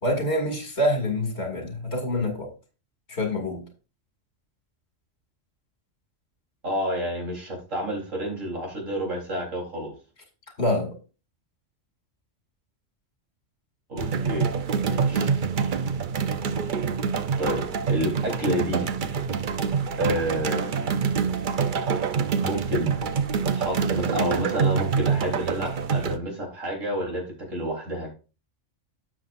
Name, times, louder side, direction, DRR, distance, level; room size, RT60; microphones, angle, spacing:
voice 1, 0.0-2.5 3.1-3.6 10.6-11.0, left 1 dB, 55° left, 3 dB, 2.8 m, -26 dB
voice 2, 6.6-9.9 13.9-14.5 14.8-15.3 17.4-18.9 20.0-21.8 22.4-22.9 23.4-28.1, equal, 90° right, 0 dB, 4.2 m, -30 dB
sound 1, 14.0-26.2, right 6 dB, 50° right, 0.7 m, -26 dB
12.0 x 7.7 x 2.6 m, 0.32 s
omnidirectional pair, 1.3 m